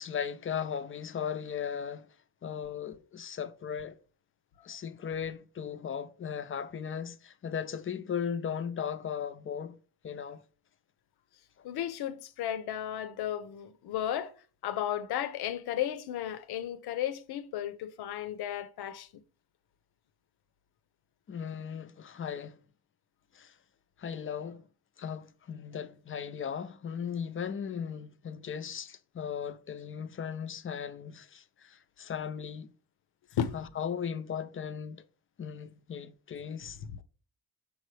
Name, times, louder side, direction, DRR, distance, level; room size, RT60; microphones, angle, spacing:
voice 1, 0.0-2.1 2.4-4.0 4.6-9.8 10.0-10.4 21.3-22.6 23.3-23.6 24.0-24.7 25.0-32.7 33.5-35.0 35.4-37.0, left 7 dB, 35° left, 0.5 m, -37 dB
voice 2, 11.6-14.3 14.6-19.2 33.3-33.6, left 10 dB, 90° left, 0.7 m, -34 dB
6.3 x 5.2 x 3.2 m
cardioid pair, 115°, 37 cm